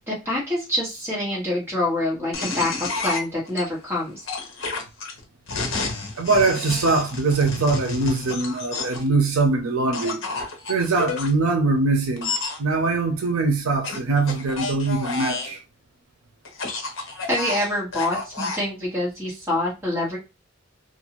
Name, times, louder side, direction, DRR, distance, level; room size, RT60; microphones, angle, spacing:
voice 1, 0.1-4.2 17.3-20.2, left 1 dB, 10° right, 1.3 m, -26 dB
sound 1, 2.3-3.6 4.3-9.1 9.9-11.3 12.2-12.6 13.8-15.6 16.5-18.6, left 3 dB, 65° left, 0.8 m, -30 dB
voice 2, 6.1-12.3 12.6-15.6, right 3 dB, 85° right, 0.5 m, -22 dB
2.6 x 2.3 x 2.9 m
head